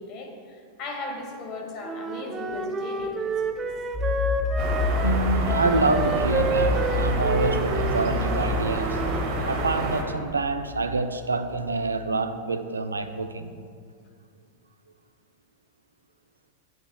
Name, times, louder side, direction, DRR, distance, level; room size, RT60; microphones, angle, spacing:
voice 1, 0.0-3.7, left 2 dB, 40° left, 1.9 m, -37 dB
Wind instrument woodwind instrument, 1.8-9.3, right 4 dB, 20° right, 0.7 m, -30 dB
sound 1, 3.9-12.0, left 4 dB, 10° left, 1.1 m, -30 dB
sound 2, 4.6-10.0, right 2 dB, 45° right, 1.7 m, -29 dB
voice 2, 5.0-9.0 9.4-13.5, right 3 dB, 75° right, 0.6 m, -26 dB
15.5 x 10.0 x 2.4 m
figure-of-eight pair, 90°, 0 cm